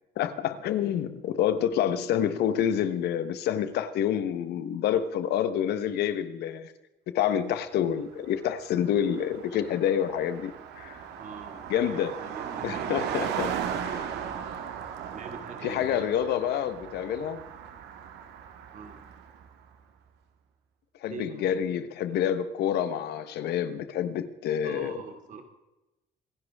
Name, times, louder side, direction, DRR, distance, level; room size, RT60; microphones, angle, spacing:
voice 1, 0.2-6.7 7.1-11.0 11.7-12.2 12.6-14.0 15.6-17.4 21.0-24.9, left 9 dB, 75° left, 1.2 m, -28 dB
Car passing by, 8.2-8.3 8.5-19.5, right 8 dB, 80° right, 1.8 m, -37 dB
voice 2, 11.2-13.0 13.8-14.3 15.1-16.2 18.7-19.0 21.1-21.5 24.6-25.4, right 4 dB, 50° right, 2.7 m, -43 dB
26.5 x 11.0 x 3.6 m
cardioid pair, 110°, 17 cm